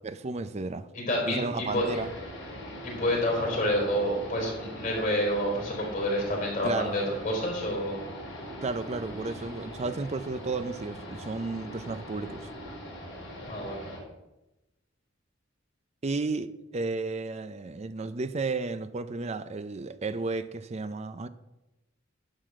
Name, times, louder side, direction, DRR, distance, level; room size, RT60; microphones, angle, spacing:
voice 1, 0.0-0.9 1.3-2.1 6.6-6.9 8.6-12.5 16.0-21.3, right 3 dB, 35° right, 0.5 m, -33 dB
voice 2, 0.9-1.9 2.8-8.0 13.5-13.8, equal, 40° left, 3.9 m, -28 dB
sound 1, 1.7-14.0, equal, 65° left, 4.0 m, -41 dB
11.5 x 4.0 x 7.4 m
head